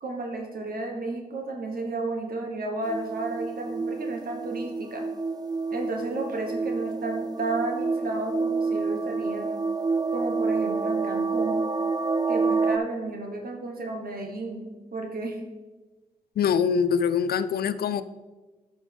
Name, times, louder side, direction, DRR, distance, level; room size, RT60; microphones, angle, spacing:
voice 1, 0.0-5.0 5.7-9.5 10.1-11.6 12.3-15.4, right 2 dB, 65° right, 1 dB, 1.1 m, -32 dB
sound 1, 2.8-12.8, right 4 dB, 25° right, 0.4 m, -28 dB
voice 2, 16.4-18.0, left 7 dB, 70° left, 13 dB, 0.4 m, -24 dB
9.7 x 5.2 x 3.4 m, 1.2 s
supercardioid pair, 45°, 17 cm